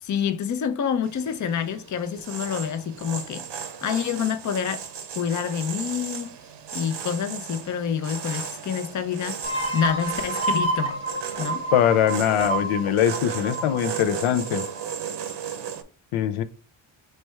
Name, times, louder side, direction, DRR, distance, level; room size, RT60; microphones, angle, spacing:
voice 1, 0.0-3.4 3.8-4.8 5.2-6.3 6.7-9.4 9.7-11.0 11.4-11.6, left 8 dB, 40° left, 0.5 m, -27 dB
sound 1, 1.0-15.8, right 7 dB, 60° right, 0.7 m, -36 dB
sound 2, 9.4-14.9, right 2 dB, 10° left, 1.2 m, -29 dB
voice 2, 11.7-14.7 16.1-16.4, left 9 dB, 85° left, 0.6 m, -22 dB
3.3 x 3.2 x 4.5 m
cardioid pair, 105°, 48 cm